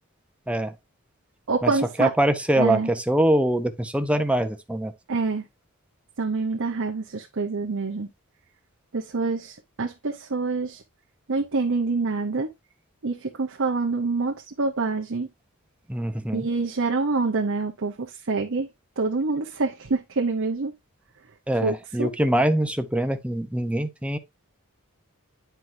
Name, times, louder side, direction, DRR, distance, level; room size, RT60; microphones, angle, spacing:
voice 1, 1.5-2.1 2.6-2.9 5.1-5.5 6.2-8.1 8.9-10.8 11.3-12.5 13.0-15.3 16.3-18.7 19.0-20.7 21.6-22.1, right 3 dB, 60° right, 0.8 m, -26 dB
voice 2, 2.0-4.9 15.9-16.5 21.5-24.2, right 1 dB, 5° right, 0.7 m, -23 dB
9.7 x 4.6 x 2.6 m
head